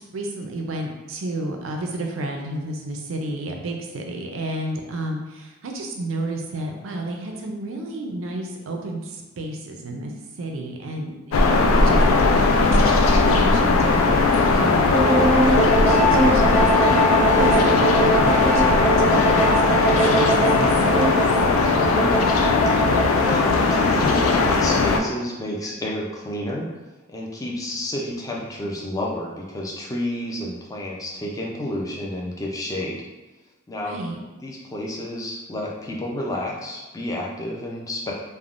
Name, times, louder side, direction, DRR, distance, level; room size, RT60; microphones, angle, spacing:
voice 1, 0.0-10.1 10.4-11.6 11.8-12.0 12.6-14.9 15.4-18.7 19.0-19.2 19.4-21.2 33.8-34.2, right 1 dB, 80° right, 2 dB, 0.5 m, -32 dB
sound 1, 11.3-25.0, left 3 dB, 90° left, 0.3 m, -18 dB
voice 2, 11.4-11.7 21.7-22.2 22.8-26.7 27.1-33.0 33.7-34.0 34.4-38.1, left 1 dB, 15° left, -2 dB, 0.4 m, -30 dB
sound 2, 14.9-24.3, right 1 dB, 35° left, 0.8 m, -22 dB
3.3 x 2.1 x 2.4 m, 1.1 s
head